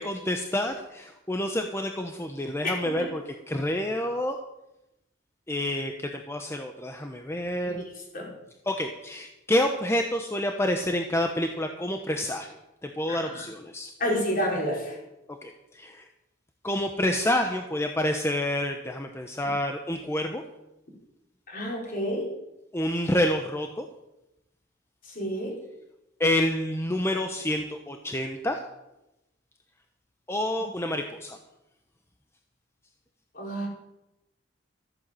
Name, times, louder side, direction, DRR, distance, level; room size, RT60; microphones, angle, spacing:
voice 1, 0.0-4.3 5.5-7.8 8.7-12.5 12.8-13.9 15.4-16.0 16.6-20.4 22.7-23.8 26.2-28.6 30.3-31.4, left 1 dB, 15° left, 4 dB, 0.9 m, -28 dB
voice 2, 2.6-3.1 7.6-7.7 8.1-8.3 13.1-13.5 14.0-15.0 21.5-22.3 25.2-25.6 33.3-33.7, equal, 45° left, -2 dB, 5.1 m, -29 dB
14.0 x 9.3 x 7.7 m, 0.91 s
head